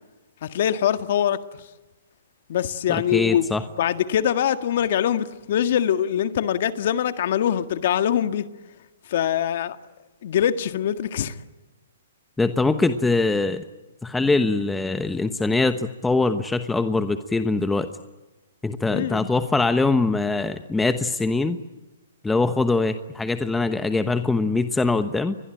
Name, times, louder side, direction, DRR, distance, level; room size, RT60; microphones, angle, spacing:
voice 1, 0.4-1.7 2.5-8.5 9.1-9.8 10.2-11.4 18.9-19.2, left 10 dB, 55° left, 1.7 m, -23 dB
voice 2, 2.9-3.6 12.4-13.6 14.0-17.9 18.6-21.6 22.2-25.4, left 3 dB, 5° left, 1.1 m, -23 dB
29.0 x 22.0 x 9.1 m
hypercardioid pair, 140°, 0 cm